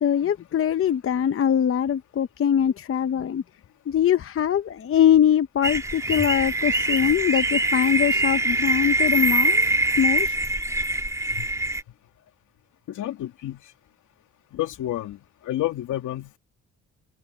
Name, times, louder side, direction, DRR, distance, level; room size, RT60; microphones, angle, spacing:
voice 1, 0.0-3.4 3.9-9.6 10.0-10.4, left 9 dB, 45° left, 0.9 m, -22 dB
sound 1, 5.6-11.8, right 2 dB, 10° right, 2.0 m, -23 dB
voice 2, 12.9-13.6 14.5-16.4, left 14 dB, 80° left, 2.9 m, -30 dB
cardioid pair, 90°, 30 cm